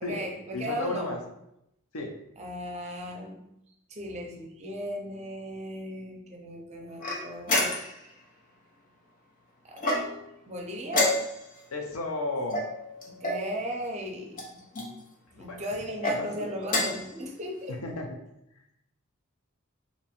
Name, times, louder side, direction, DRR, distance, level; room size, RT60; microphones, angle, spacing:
voice 1, 0.0-1.2 2.4-3.5 3.9-7.7 9.6-9.8 10.5-11.2 13.1-14.6 15.4-17.8, equal, 30° right, 1 dB, 0.6 m, -36 dB
voice 2, 0.5-1.2 1.9-2.1 11.7-12.6 15.3-15.6 16.1-16.5 17.7-18.1, left 2 dB, 85° left, 3 dB, 0.7 m, -33 dB
sound 1, 7.0-8.1 9.8-10.4 10.9-11.6 12.5-13.5 14.3-14.9 15.8-16.2 16.6-17.1, left 1 dB, 40° left, 0.7 m, -28 dB
2.9 x 2.6 x 4.2 m, 0.82 s
head